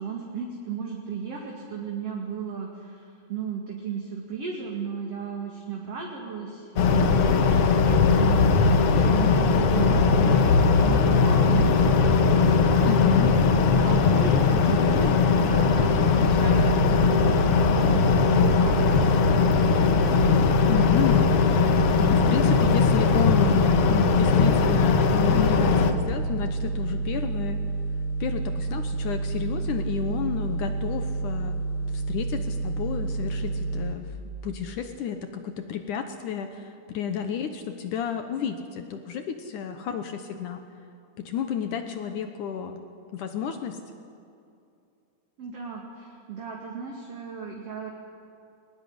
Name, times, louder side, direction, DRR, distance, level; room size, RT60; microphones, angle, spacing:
voice 1, 0.0-8.7 9.0-12.5 12.8-13.1 13.5-19.2 45.4-47.9, right 6 dB, 45° right, 0 dB, 2.7 m, -35 dB
sound 1, 6.8-25.9, left 5 dB, 85° left, 1.3 m, -20 dB
voice 2, 12.8-13.3 20.7-21.7 22.0-27.6 28.2-31.6 31.9-34.1 34.4-40.6 41.2-42.8 43.1-43.8, left 8 dB, 70° left, 7 dB, 2.1 m, -30 dB
sound 2, 16.2-33.9, right 3 dB, 85° right, 5.4 m, -29 dB
21.5 x 19.5 x 9.6 m, 2.6 s
omnidirectional pair, 4.7 m